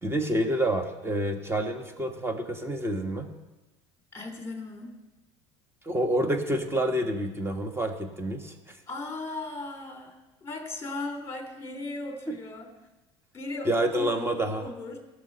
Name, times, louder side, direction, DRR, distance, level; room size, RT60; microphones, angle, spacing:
voice 1, 0.0-3.3 5.8-8.8 12.3-12.4 13.7-14.6, right 1 dB, 15° right, 6 dB, 1.7 m, -28 dB
voice 2, 4.1-5.0 8.9-12.7 13.3-15.0, left 2 dB, 20° left, 4 dB, 2.9 m, -37 dB
17.0 x 6.5 x 5.5 m, 1.1 s
hypercardioid pair, 80°, 15 cm